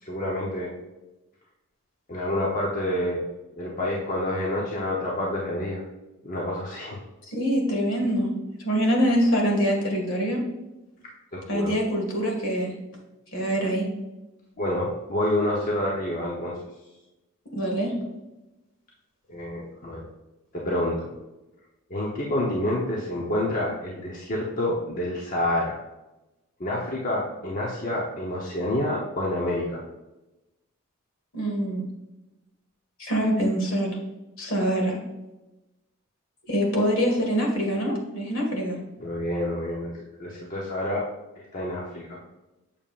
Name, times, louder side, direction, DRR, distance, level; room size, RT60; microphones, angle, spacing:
voice 1, 0.0-0.7 2.1-3.2 3.6-5.8 6.2-7.0 11.3-11.7 14.6-16.5 19.3-20.1 20.5-21.1 21.9-25.8 26.6-29.8 39.0-41.1 41.4-42.2, left 1 dB, 40° left, -3 dB, 0.9 m, -28 dB
voice 2, 7.3-8.3 8.6-10.4 11.5-12.7 13.3-13.9 17.5-17.9 31.3-31.8 33.0-34.0 34.4-35.0 36.5-38.8, equal, 70° left, 0 dB, 1.9 m, -24 dB
7.2 x 7.1 x 2.5 m, 1.0 s
head